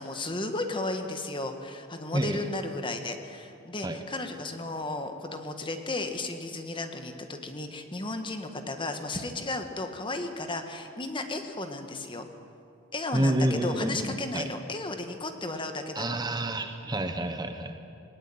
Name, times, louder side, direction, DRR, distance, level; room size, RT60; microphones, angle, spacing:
voice 1, 0.0-12.3 12.9-16.2, left 2 dB, 25° left, 6 dB, 1.6 m, -34 dB
voice 2, 2.1-2.4 3.8-4.0 13.1-14.5 15.9-17.8, right 1 dB, 20° right, 7 dB, 1.0 m, -29 dB
20.0 x 18.5 x 8.7 m, 2.5 s
head